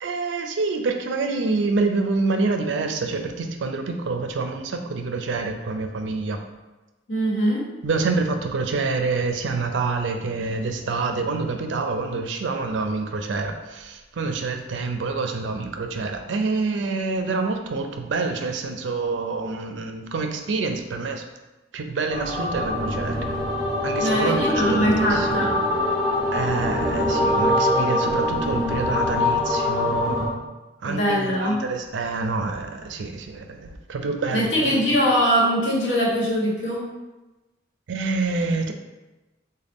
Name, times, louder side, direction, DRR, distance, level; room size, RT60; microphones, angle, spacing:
voice 1, 0.0-6.4 7.8-21.2 21.7-23.2 23.8-25.5 26.3-30.2 30.8-34.9 37.9-38.7, right 3 dB, 70° right, 5 dB, 0.4 m, -27 dB
voice 2, 7.1-7.6 24.0-25.6 30.8-31.6 34.3-36.8, equal, 85° left, -5 dB, 1.1 m, -22 dB
sound 1, 22.1-30.3, left 1 dB, 5° left, 1.0 m, -23 dB
4.0 x 2.2 x 3.5 m, 1.1 s
head